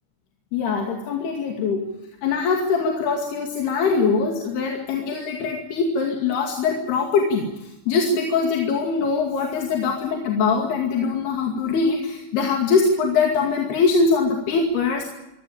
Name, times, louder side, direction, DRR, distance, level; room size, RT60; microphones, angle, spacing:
voice 1, 0.5-1.9 2.2-15.0, left 4 dB, 65° left, 2 dB, 4.3 m, -22 dB
24.5 x 17.5 x 8.8 m, 0.93 s
omnidirectional pair, 5.0 m